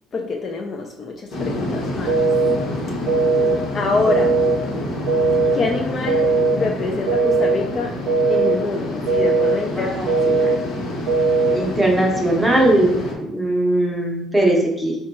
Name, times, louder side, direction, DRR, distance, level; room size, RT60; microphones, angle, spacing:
voice 1, 0.1-2.3 3.7-4.3 5.5-7.9 8.3-10.7, left 3 dB, 30° left, 1 dB, 0.3 m, -25 dB
sound 1, 1.3-13.1, left 1 dB, 60° left, 1.0 m, -28 dB
sound 2, 2.1-2.6 3.1-3.6 4.1-4.6 5.1-5.6 6.1-6.6 7.1-7.6 8.1-8.6 9.1-9.6 10.1-10.6 11.1-11.6, right 3 dB, 85° right, 0.4 m, -18 dB
voice 2, 9.8-10.1 11.5-15.0, right 1 dB, ahead, -2 dB, 0.6 m, -19 dB
3.6 x 2.2 x 4.0 m, 0.82 s
cardioid pair, 170°, 0 cm